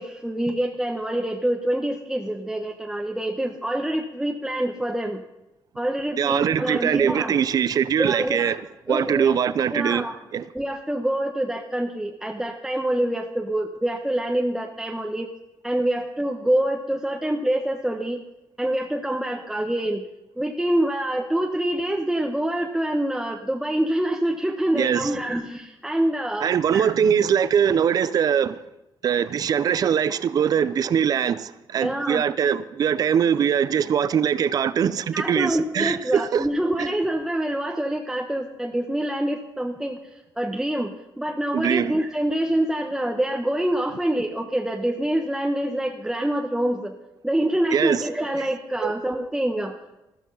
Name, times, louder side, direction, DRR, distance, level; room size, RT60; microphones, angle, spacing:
voice 1, 0.0-5.2 5.8-7.4 8.0-8.6 8.9-9.3 9.7-10.1 10.5-15.3 15.6-18.2 18.6-20.0 20.4-27.1 31.8-32.2 35.1-40.0 40.4-46.9 47.2-49.7, right 1 dB, 5° right, 1.1 m, -26 dB
voice 2, 6.2-8.6 8.9-10.1 10.3-10.4 24.7-25.2 26.4-28.6 29.0-36.5 36.8-36.9 41.5-42.0 47.7-48.1 48.4-48.5 48.8-48.9, right 8 dB, 55° right, 0.7 m, -22 dB
14.0 x 13.5 x 5.6 m
cardioid pair, 130°, 8 cm